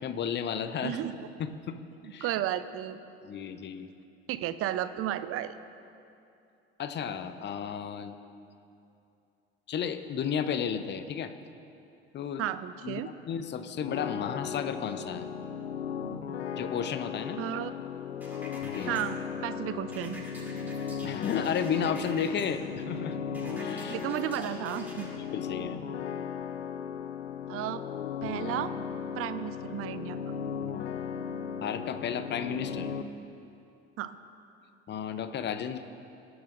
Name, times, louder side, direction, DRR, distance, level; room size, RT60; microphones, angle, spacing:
voice 1, 0.0-1.0 1.4-1.8 2.1-2.3 3.2-3.9 6.8-8.1 9.7-11.3 12.1-12.4 12.8-15.3 16.6-17.4 18.7-19.0 21.0-23.2 23.6-24.0 25.3-25.8 31.6-32.9 34.9-35.8, left 7 dB, 35° left, 10 dB, 0.7 m, -33 dB
voice 2, 0.8-1.3 2.0-3.0 4.3-5.5 12.4-13.1 17.4-17.7 18.9-19.2 19.4-20.2 23.9-25.1 27.5-27.9 28.2-28.7 29.2-30.2 34.0-34.2, right 12 dB, 45° right, 13 dB, 0.6 m, -33 dB
sound 1, 13.8-33.0, left 7 dB, 85° left, 0.5 m, -36 dB
sound 2, 18.2-19.0 19.9-22.5 23.3-25.1, right 1 dB, 5° right, 2.5 m, -47 dB
19.5 x 7.9 x 2.6 m, 2.6 s
figure-of-eight pair, 60°, 32 cm